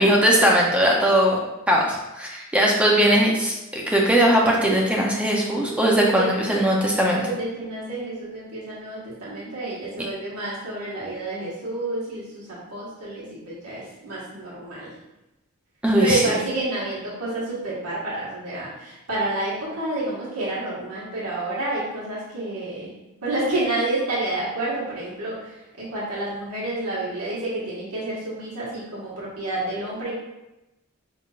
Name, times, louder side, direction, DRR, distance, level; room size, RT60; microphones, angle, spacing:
voice 1, 0.0-1.4 1.7-7.2 15.8-16.3, equal, 5° right, -2 dB, 0.6 m, -19 dB
voice 2, 7.2-14.9 16.0-22.9 23.2-30.1, right 2 dB, 85° right, -8 dB, 1.6 m, -29 dB
5.7 x 3.8 x 2.4 m, 0.97 s
head